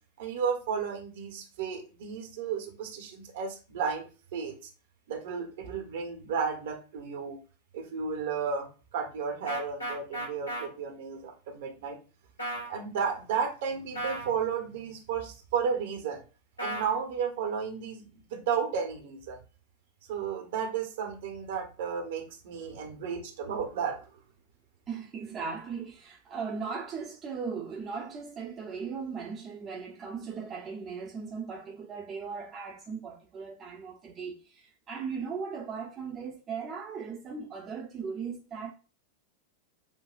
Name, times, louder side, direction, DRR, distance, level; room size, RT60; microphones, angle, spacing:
voice 1, 0.2-4.0 4.3-4.5 5.1-7.4 7.7-12.0 12.7-16.2 16.6-19.4 20.1-24.0, right 6 dB, 55° right, 1.3 m, -33 dB
sound 1, 9.5-10.6 12.4-12.7 13.9-14.3 16.6-16.9, right 1 dB, 80° left, 2.2 m, -34 dB
voice 2, 24.9-38.7, right 5 dB, 25° right, 1.0 m, -38 dB
7.3 x 2.7 x 2.5 m
figure-of-eight pair, 90°, 0 cm